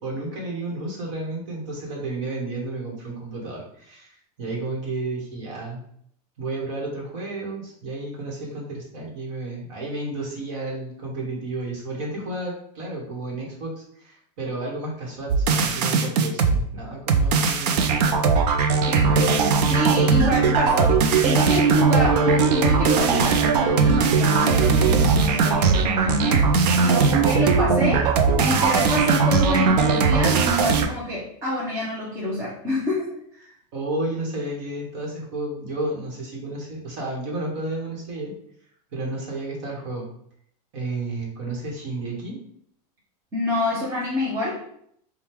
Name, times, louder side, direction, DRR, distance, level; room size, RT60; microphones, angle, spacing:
voice 1, 0.0-5.8 6.4-17.9 33.7-38.3 38.9-40.1 40.7-42.4, right 2 dB, 50° right, -2 dB, 1.2 m, -32 dB
sound 1, 15.3-16.6 17.1-30.9, right 5 dB, 80° right, 0.5 m, -19 dB
voice 2, 18.9-28.1 28.4-33.1 43.3-44.6, left 1 dB, 15° right, -6 dB, 0.6 m, -27 dB
3.5 x 2.3 x 4.4 m, 0.67 s
supercardioid pair, 175°, 20 cm